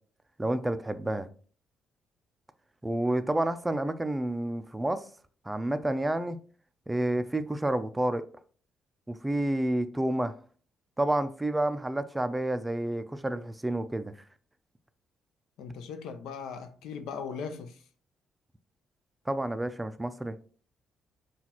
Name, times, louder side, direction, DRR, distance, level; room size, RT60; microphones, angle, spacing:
voice 1, 0.4-1.3 2.8-5.1 5.5-6.4 6.9-8.3 9.1-10.3 11.0-14.1 19.3-20.3, right 1 dB, 10° right, 0.4 m, -29 dB
voice 2, 15.6-17.8, left 6 dB, 85° left, 0.5 m, -39 dB
5.8 x 2.4 x 2.9 m
cardioid pair, 90°, 0 cm